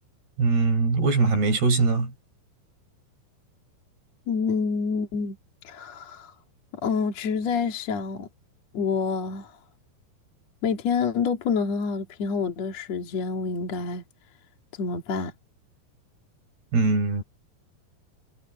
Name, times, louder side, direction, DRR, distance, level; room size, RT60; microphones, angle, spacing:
voice 1, 0.4-2.1 16.7-17.2, right 3 dB, 70° right, 7.0 m, -21 dB
voice 2, 4.3-5.4 5.6-6.3 6.8-8.3 8.7-9.5 10.6-14.0 14.8-15.3, left 5 dB, 45° left, 2.8 m, -27 dB
omnidirectional pair, 4.9 m